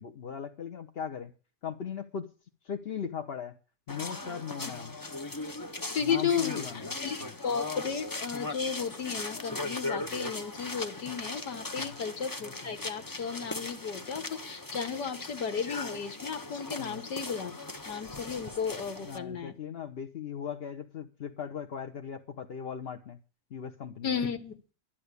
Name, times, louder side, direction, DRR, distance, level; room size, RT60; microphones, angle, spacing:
voice 1, 0.0-1.3 1.6-2.3 2.6-3.5 3.9-5.0 6.0-6.9 7.2-7.3 11.8-12.0 16.8-17.0 19.0-23.2 23.5-24.2, left 7 dB, 45° left, 6 dB, 0.9 m, -38 dB
sound 1, 3.9-19.2, left 2 dB, 20° left, 0.5 m, -39 dB
voice 2, 5.9-17.6 17.8-19.5 24.0-24.6, left 6 dB, 80° left, 8 dB, 1.9 m, -34 dB
12.0 x 10.5 x 8.2 m, 0.39 s
omnidirectional pair, 1.8 m